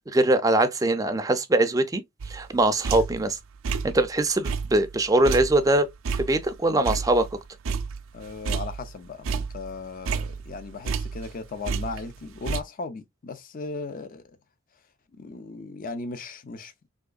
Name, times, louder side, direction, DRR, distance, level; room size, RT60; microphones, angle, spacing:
voice 1, 0.1-2.0 2.3-3.4 3.9-5.9 6.2-7.3, right 2 dB, 15° right, 0.4 m, -22 dB
sound 1, 2.2-3.3 3.6-4.1 4.4-7.4 7.6-9.0 9.2-11.4 11.6-12.6, right 5 dB, 90° right, 0.4 m, -31 dB
voice 2, 8.1-14.2 15.2-16.9, left 3 dB, 45° left, 0.5 m, -37 dB
3.6 x 3.0 x 2.3 m
head